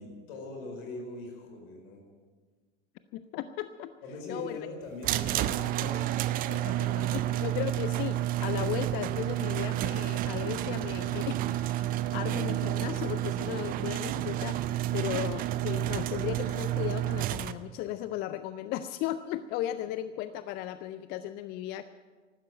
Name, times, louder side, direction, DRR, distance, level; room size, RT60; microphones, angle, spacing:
voice 1, 0.0-2.0 4.0-6.1 6.5-7.1, left 2 dB, 50° left, 2 dB, 5.0 m, -41 dB
voice 2, 3.1-3.9 4.3-4.6 7.4-8.1 8.4-11.9 12.1-14.6 14.9-21.8, left 12 dB, 25° left, 12 dB, 0.4 m, -36 dB
sound 1, 5.0-17.5, right 13 dB, 25° right, 0.5 m, -30 dB
14.5 x 12.5 x 7.7 m, 1.5 s
figure-of-eight pair, 85°, 36 cm